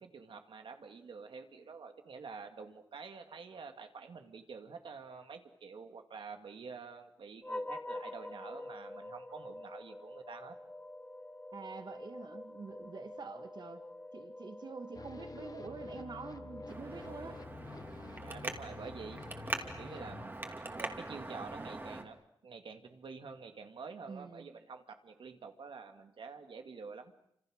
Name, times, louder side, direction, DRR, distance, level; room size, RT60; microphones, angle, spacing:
voice 1, 0.0-10.6 18.2-19.2 19.8-20.4 20.7-27.1, right 5 dB, 90° right, 6 dB, 2.3 m, -48 dB
sound 1, 7.4-18.0, left 1 dB, 15° left, 1.7 m, -46 dB
voice 2, 11.5-13.8 14.1-17.4 24.1-24.5, right 4 dB, 60° right, 7 dB, 1.9 m, -46 dB
sound 2, 14.9-20.3, left 4 dB, 45° left, 1.3 m, -50 dB
Traffic noise roadway noise, 16.7-22.0, right 2 dB, 25° right, 2.6 m, -42 dB
29.5 x 26.5 x 6.5 m, 0.72 s
wide cardioid pair, 130°, 8 cm